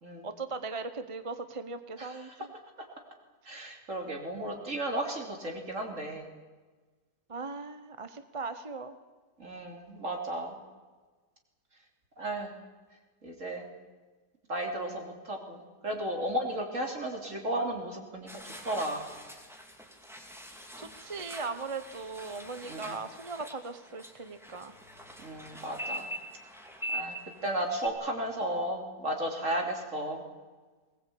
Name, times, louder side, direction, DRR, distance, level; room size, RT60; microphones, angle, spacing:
voice 1, 0.2-2.5 7.3-8.9 20.8-24.7, right 4 dB, 25° right, 10 dB, 0.8 m, -39 dB
voice 2, 3.5-6.2 9.4-10.6 12.2-12.5 13.2-13.6 14.5-18.3 18.6-19.0 22.7-23.0 25.2-26.1 26.9-27.2 27.4-30.2, right 1 dB, 45° right, 2 dB, 3.6 m, -34 dB
sound 1, 18.3-27.9, right 1 dB, ahead, 2.4 m, -43 dB
20.5 x 19.5 x 8.6 m, 1.4 s
omnidirectional pair, 1.8 m